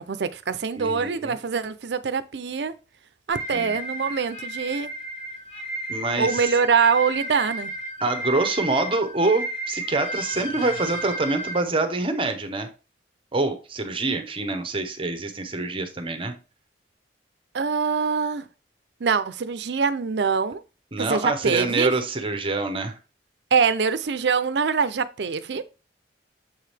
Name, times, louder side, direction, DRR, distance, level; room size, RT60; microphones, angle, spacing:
voice 1, 0.0-2.7 3.3-4.9 6.2-7.7 17.5-18.5 19.0-20.6 21.0-21.9 23.5-25.6, right 5 dB, 70° right, 0.5 m, -24 dB
voice 2, 0.7-1.3 3.5-3.8 5.9-6.5 8.0-12.7 13.3-16.3 20.9-23.0, right 3 dB, 30° right, 0.9 m, -26 dB
sound 1, 3.3-11.6, right 1 dB, 65° left, 3.3 m, -33 dB
7.2 x 4.8 x 3.3 m
head